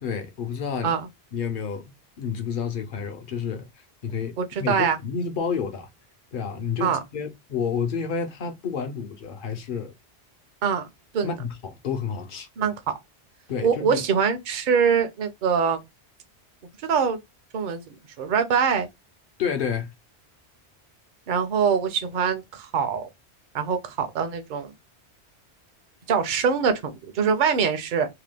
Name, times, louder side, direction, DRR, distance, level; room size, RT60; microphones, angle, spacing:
voice 1, 0.0-0.9 1.3-1.9 2.2-3.7 4.0-5.9 6.3-9.9 11.2-12.5 13.5-14.0 19.4-19.9, left 6 dB, 60° left, 0.7 m, -30 dB
voice 2, 4.4-5.0 6.8-7.0 10.6-10.9 11.1-11.4 12.6-12.7 13.6-15.8 16.8-17.2 17.5-18.9 21.3-23.1 23.5-24.7 26.1-28.1, right 6 dB, 55° right, 0.7 m, -23 dB
2.9 x 2.2 x 3.3 m
omnidirectional pair, 1.1 m